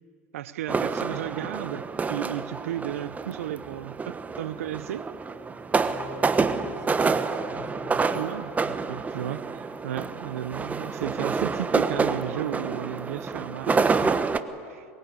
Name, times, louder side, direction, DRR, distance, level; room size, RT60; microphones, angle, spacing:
voice 1, 0.3-4.0 4.4-5.1 8.1-14.1 14.7-14.8, right 12 dB, 80° right, 15 dB, 1.0 m, -34 dB
sound 1, 0.7-14.4, right 4 dB, 20° right, 1.3 m, -28 dB
voice 2, 5.8-8.2, left 2 dB, 70° left, 3 dB, 7.3 m, -44 dB
22.5 x 22.5 x 8.5 m, 2.2 s
hypercardioid pair, 90°, 8 cm